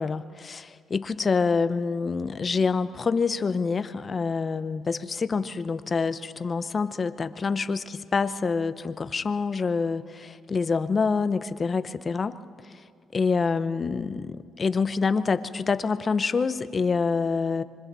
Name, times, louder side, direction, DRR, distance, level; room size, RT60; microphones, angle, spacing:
voice 1, 0.0-12.3 13.1-17.6, left 4 dB, 35° left, 13 dB, 0.8 m, -26 dB
26.0 x 24.0 x 4.1 m, 2.3 s
cardioid pair, 90°, 0 cm